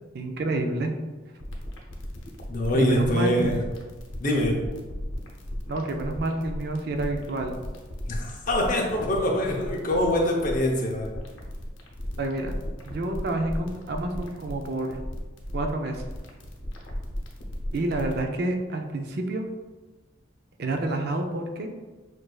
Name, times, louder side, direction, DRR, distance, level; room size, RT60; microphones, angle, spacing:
voice 1, 0.1-0.9 2.7-3.5 5.7-7.6 12.2-12.5 12.9-15.0 15.5-16.0 17.7-19.5 20.6-21.7, right 2 dB, 55° right, 4 dB, 0.4 m, -28 dB
sound 1, 1.4-18.2, equal, 85° left, 0.8 m, -36 dB
voice 2, 2.5-3.6 4.2-4.6 8.1-11.1, left 1 dB, 45° left, 0 dB, 0.7 m, -24 dB
6.0 x 2.6 x 2.3 m, 1.2 s
head